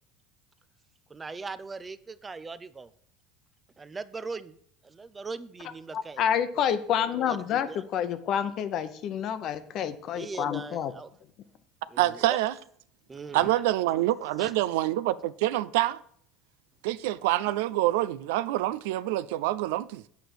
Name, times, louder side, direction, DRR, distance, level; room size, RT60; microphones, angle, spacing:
voice 1, 1.1-2.9 3.8-4.6 4.8-6.3 7.3-7.9 10.1-11.1 11.9-12.4 13.1-13.5 14.4-14.5, right 4 dB, 20° right, 0.5 m, -40 dB
voice 2, 5.9-10.9, left 9 dB, 50° left, 0.8 m, -28 dB
voice 3, 12.0-12.5 13.3-16.0 16.8-20.0, right 15 dB, 85° right, 0.4 m, -26 dB
8.3 x 5.1 x 6.1 m
supercardioid pair, 120°, 0 cm